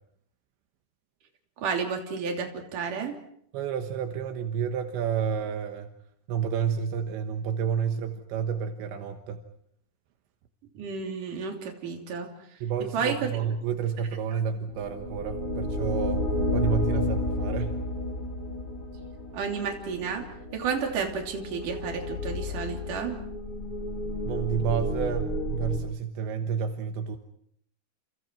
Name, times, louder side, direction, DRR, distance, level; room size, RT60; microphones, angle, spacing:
voice 1, 1.6-3.2 10.7-12.3 12.9-13.3 19.3-20.3 20.5-23.2, right 5 dB, 50° right, 2 dB, 4.3 m, -31 dB
voice 2, 3.5-5.9 6.3-9.4 12.6-17.8 24.2-27.2, right 7 dB, 80° right, 6 dB, 3.5 m, -30 dB
sound 1, 14.7-25.8, left 1 dB, 30° left, 4.3 m, -31 dB
29.5 x 29.0 x 4.6 m, 0.70 s
omnidirectional pair, 5.3 m